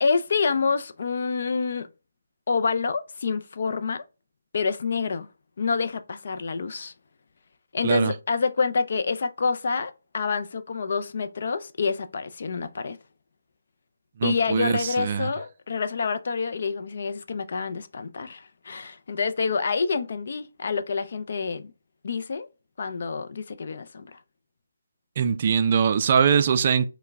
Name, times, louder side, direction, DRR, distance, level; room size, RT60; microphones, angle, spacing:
voice 1, 0.0-1.9 2.5-4.0 4.5-5.3 5.6-6.9 7.7-13.0 14.2-21.7 22.0-22.5 22.8-24.2, left 5 dB, 55° left, 0.4 m, -27 dB
voice 2, 14.2-15.3 25.2-26.9, right 7 dB, 40° right, 0.3 m, -22 dB
4.5 x 2.1 x 3.4 m
figure-of-eight pair, 160°, 0 cm